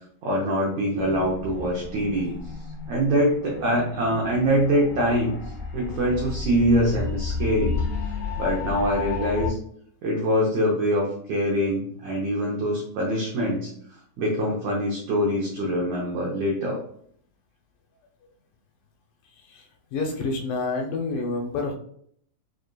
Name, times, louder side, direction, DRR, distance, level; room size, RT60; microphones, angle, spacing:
voice 1, 0.2-2.3 2.9-5.4 5.7-7.8 8.4-9.6 10.0-13.7 14.2-16.8, equal, 85° right, -2 dB, 1.5 m, -24 dB
sound 1, 1.0-9.5, left 5 dB, 60° left, 1.1 m, -32 dB
voice 2, 19.4-21.7, left 3 dB, 80° left, 2 dB, 2.0 m, -29 dB
6.2 x 2.5 x 2.2 m, 0.63 s
omnidirectional pair, 4.2 m